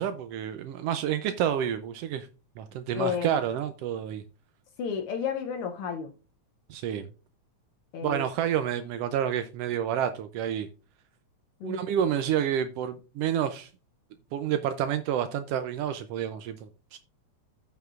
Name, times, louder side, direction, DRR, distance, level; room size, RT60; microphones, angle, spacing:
voice 1, 0.0-2.3 2.6-4.2 6.7-7.1 8.0-10.7 11.6-13.7 14.3-17.0, right 9 dB, 90° right, 1.3 m, -29 dB
voice 2, 2.9-3.4 4.8-6.1 7.9-8.2 11.6-11.8, left 7 dB, 80° left, 1.2 m, -31 dB
14.5 x 5.7 x 2.4 m
omnidirectional pair, 3.4 m